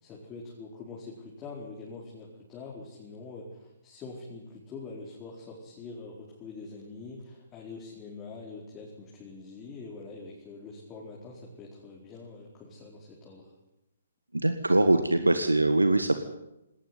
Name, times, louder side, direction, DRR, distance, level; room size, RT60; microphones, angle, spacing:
voice 1, 0.0-13.5, left 3 dB, 20° left, -3 dB, 4.7 m, -44 dB
voice 2, 14.3-16.2, right 2 dB, 85° right, 9 dB, 1.7 m, -23 dB
19.0 x 18.5 x 9.7 m, 0.87 s
figure-of-eight pair, 130°, 0 cm